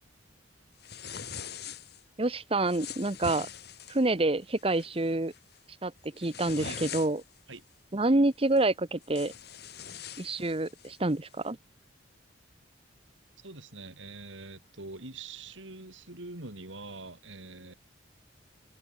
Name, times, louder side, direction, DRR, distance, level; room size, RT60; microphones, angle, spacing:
sound 1, 0.8-2.0 2.7-4.1 4.6-4.9 5.3-5.6 6.0-7.4 8.6-8.7 9.0-11.0, left 7 dB, 60° left, 4.6 m, -42 dB
voice 1, 2.2-3.5 3.9-5.3 5.8-7.2 7.9-9.3 10.2-11.6, right 2 dB, 30° right, 1.0 m, -27 dB
voice 2, 6.6-7.0 7.5-7.6 13.4-17.7, right 3 dB, 90° right, 4.2 m, -44 dB
open air
head